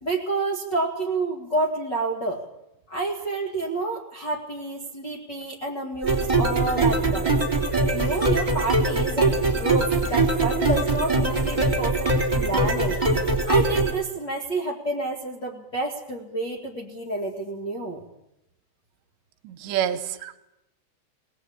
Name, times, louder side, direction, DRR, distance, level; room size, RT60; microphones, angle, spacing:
voice 1, 0.0-2.4 2.9-7.4 7.9-12.1 12.3-13.0 13.5-18.0, right 2 dB, 85° left, -2 dB, 0.9 m, -29 dB
sound 1, 6.0-13.9, right 2 dB, 10° right, 2.6 m, -22 dB
voice 2, 19.4-20.4, right 10 dB, 75° right, 8 dB, 2.8 m, -28 dB
21.0 x 19.5 x 8.6 m, 0.86 s
omnidirectional pair, 5.9 m